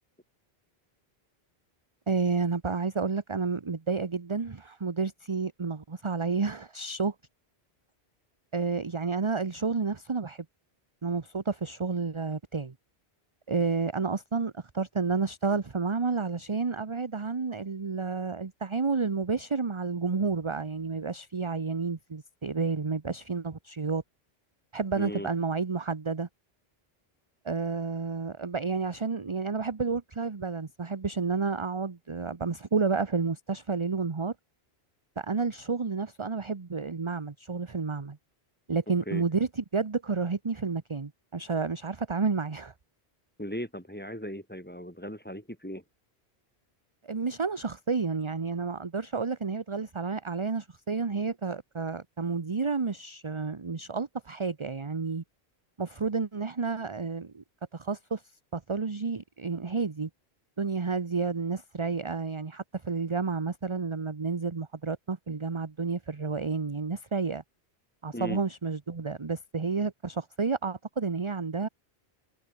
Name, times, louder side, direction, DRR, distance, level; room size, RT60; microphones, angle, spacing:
voice 1, 2.1-7.1 8.5-10.4 11.0-12.7 13.5-24.0 24.7-26.3 27.4-34.3 35.2-38.2 38.7-42.7 47.0-55.2 55.8-57.4 57.7-58.2 58.5-60.1 60.6-67.4 68.0-71.7, right 4 dB, 30° right, 1.0 m, -30 dB
voice 2, 25.0-25.3 39.1-39.2 43.4-45.8 68.1-68.4, equal, 10° left, 5.2 m, -37 dB
omnidirectional pair, 1.1 m